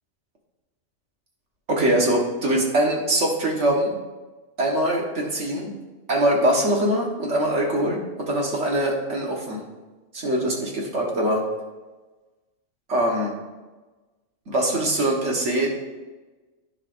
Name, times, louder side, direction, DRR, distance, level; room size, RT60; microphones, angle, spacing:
voice 1, 1.7-3.9 4.6-5.7 6.1-9.6 10.1-11.4 12.9-13.3 14.5-15.7, right 1 dB, 60° right, -1 dB, 1.6 m, -23 dB
14.0 x 4.9 x 2.6 m, 1.2 s
omnidirectional pair, 1.4 m